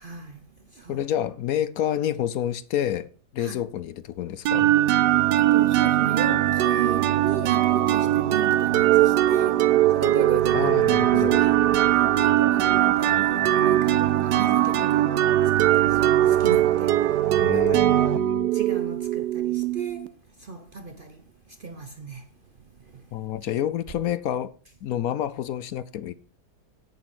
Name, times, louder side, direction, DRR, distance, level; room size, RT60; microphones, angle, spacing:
voice 1, 0.0-1.0 3.4-3.6 5.3-11.6 11.9-17.8 18.5-23.5, right 5 dB, 45° right, 0.7 m, -36 dB
voice 2, 0.9-3.1 3.3-4.7 10.5-11.4 17.4-18.5 23.1-24.5 24.8-26.1, left 10 dB, 70° left, 1.0 m, -28 dB
sound 1, 4.5-20.1, right 13 dB, 85° right, 1.3 m, -20 dB
8.7 x 8.0 x 6.0 m
omnidirectional pair, 1.7 m